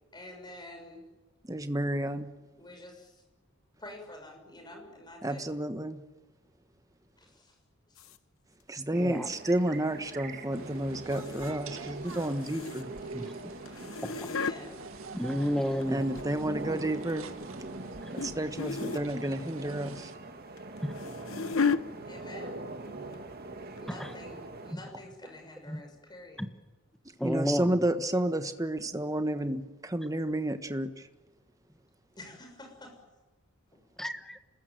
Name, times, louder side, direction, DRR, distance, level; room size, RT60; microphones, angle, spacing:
voice 1, 0.1-1.0 2.6-3.2 3.8-5.4 7.2-7.6 7.9-8.1 14.1-14.8 22.0-22.6 23.8-26.5 32.1-33.0 33.7-33.8, left 1 dB, 20° left, 4 dB, 6.6 m, -48 dB
voice 2, 1.4-2.3 5.2-6.0 8.7-12.9 15.9-17.3 18.1-20.1 27.0-31.1, right 1 dB, 15° right, 9 dB, 1.4 m, -31 dB
sound 1, 8.0-8.2 11.1-11.6 11.8-13.1 13.7-14.6 15.6-16.4 16.8-17.2 18.2-18.3 18.6-19.1 20.6-21.8 22.7-22.9 23.1-23.2 23.8-23.9, left 5 dB, 65° left, 1.0 m, -33 dB
voice 3, 8.9-9.3 13.1-13.3 13.8-13.9 15.1-16.0 18.0-18.1 20.8-20.9 23.9-24.1 24.7-24.8 25.7-25.8 26.4-26.5 27.2-27.7 34.0-34.4, equal, ahead, 9 dB, 1.3 m, -31 dB
sound 2, 8.9-24.7, right 2 dB, 45° right, 2.6 m, -43 dB
sound 3, 10.5-20.2, right 4 dB, 70° right, 2.1 m, -48 dB
26.5 x 20.5 x 9.3 m, 1.1 s
head